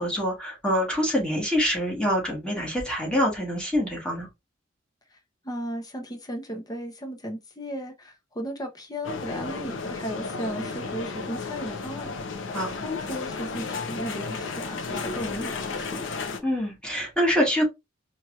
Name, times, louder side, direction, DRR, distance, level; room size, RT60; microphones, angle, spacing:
voice 1, 0.0-4.3 12.5-12.7 16.4-17.6, equal, 5° left, 1.6 m, -25 dB
voice 2, 5.4-12.2 12.7-16.1, equal, 20° left, 0.7 m, -35 dB
sound 1, 9.0-16.4, left 4 dB, 80° left, 0.8 m, -33 dB
4.4 x 3.0 x 2.4 m
head